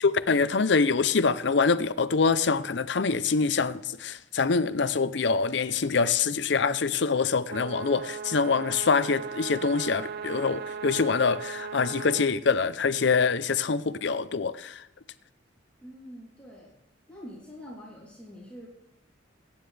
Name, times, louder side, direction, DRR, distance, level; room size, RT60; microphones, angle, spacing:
voice 1, 0.0-14.9, left 4 dB, 65° left, 0.6 m, -25 dB
sound 1, 7.5-12.3, right 6 dB, 55° right, 0.6 m, -37 dB
voice 2, 15.8-16.7 17.1-18.7, equal, 5° left, 3.2 m, -45 dB
23.0 x 9.8 x 3.4 m
head